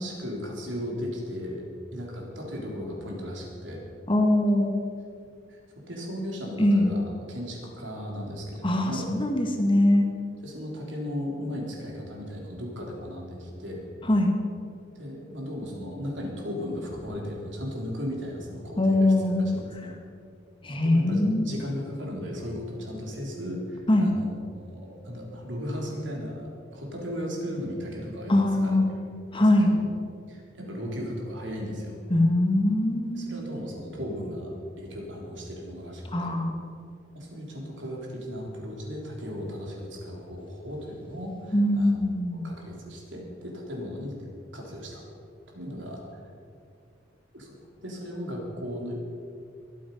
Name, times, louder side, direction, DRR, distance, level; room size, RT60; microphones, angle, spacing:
voice 1, 0.0-1.6 1.9-3.8 5.5-5.6 5.9-7.0 7.3-9.1 10.4-13.8 14.9-19.9 20.8-29.9 30.3-32.0 33.1-36.3 37.1-41.9 42.3-44.2 44.5-45.0 45.5-46.2 47.3-47.5 47.8-49.0, equal, 70° right, -1 dB, 3.5 m, -36 dB
voice 2, 4.1-4.7 6.6-6.9 8.6-10.0 14.1-14.3 18.8-19.5 20.6-21.5 23.9-24.1 28.3-28.8 29.3-29.7 32.1-33.4 36.1-36.6 41.5-42.5, left 1 dB, 30° left, 3 dB, 1.7 m, -22 dB
22.5 x 8.5 x 5.5 m, 2.4 s
head